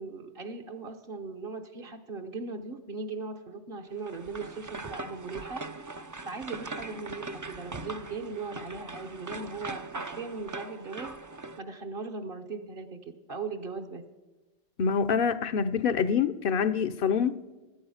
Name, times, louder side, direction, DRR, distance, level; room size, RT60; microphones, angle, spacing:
voice 1, 0.0-11.2 11.6-14.0, right 4 dB, 55° right, 7 dB, 1.1 m, -39 dB
sound 1, 4.0-11.6, right 3 dB, 30° right, 0.3 m, -41 dB
voice 2, 14.8-17.4, left 6 dB, 60° left, 16 dB, 0.8 m, -26 dB
16.5 x 12.0 x 5.6 m, 1.2 s
omnidirectional pair, 1.1 m